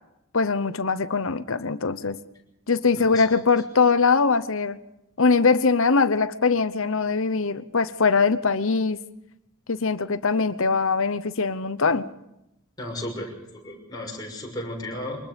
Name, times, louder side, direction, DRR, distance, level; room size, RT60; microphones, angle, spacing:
voice 1, 0.3-2.2 2.7-4.8 5.2-9.0 9.7-12.0, left 4 dB, 65° left, 14 dB, 1.0 m, -22 dB
voice 2, 2.9-3.6 12.8-15.3, left 1 dB, 20° left, -1 dB, 6.4 m, -35 dB
24.5 x 20.5 x 5.3 m, 0.87 s
head